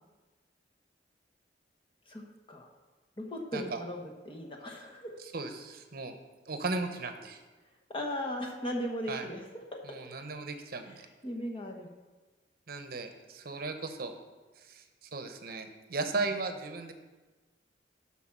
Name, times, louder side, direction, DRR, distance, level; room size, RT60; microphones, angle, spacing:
voice 1, 2.1-2.7 3.2-5.1 7.9-9.4 9.7-9.8 11.2-11.9 16.1-16.2, equal, 30° left, 1 dB, 1.2 m, -37 dB
voice 2, 5.2-6.1 6.5-7.4 9.1-9.3 9.8-11.1 12.7-14.1 14.6-16.9, right 3 dB, 55° right, 7 dB, 0.8 m, -36 dB
8.2 x 5.9 x 6.0 m, 1.3 s
head